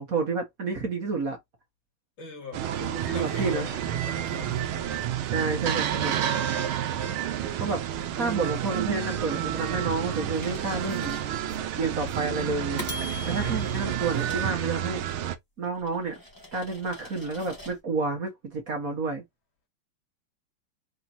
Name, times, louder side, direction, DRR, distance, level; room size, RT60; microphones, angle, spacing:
voice 1, 0.0-1.4 3.1-3.7 5.3-6.1 7.6-7.8 8.1-11.2 11.8-12.8 13.2-15.0 15.6-16.2 16.5-19.2, right 4 dB, 45° right, 1.7 m, -29 dB
voice 2, 2.2-4.6 4.9-5.2 5.5-6.4 13.1-13.5, left 5 dB, 65° left, 2.7 m, -42 dB
sound 1, 2.5-15.4, right 10 dB, 80° right, 1.6 m, -30 dB
sound 2, 10.3-11.6 12.1-12.2 12.8-15.1 15.6-17.8, left 1 dB, 10° left, 1.8 m, -43 dB
4.6 x 3.8 x 2.7 m
omnidirectional pair, 2.3 m